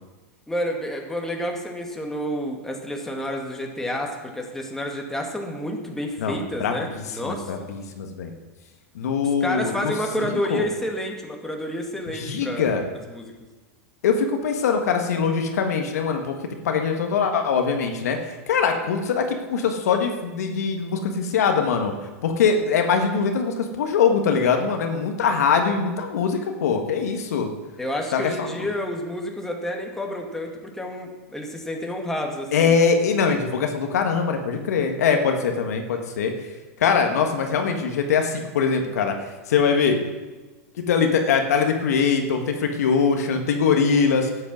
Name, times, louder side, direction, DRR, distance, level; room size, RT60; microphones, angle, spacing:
voice 1, 0.5-7.7 9.4-12.7 13.1-13.3 27.8-32.8, equal, 5° left, 1 dB, 2.0 m, -29 dB
voice 2, 6.2-6.7 7.2-8.3 8.9-9.9 10.2-10.6 12.1-12.8 14.0-16.4 16.6-18.2 18.5-21.9 22.2-27.5 28.1-28.5 32.5-36.3 36.8-39.2 39.5-40.0 40.9-44.3, left 6 dB, 80° left, 4 dB, 1.6 m, -22 dB
12.0 x 8.5 x 6.2 m, 1.2 s
hypercardioid pair, 115°, 8 cm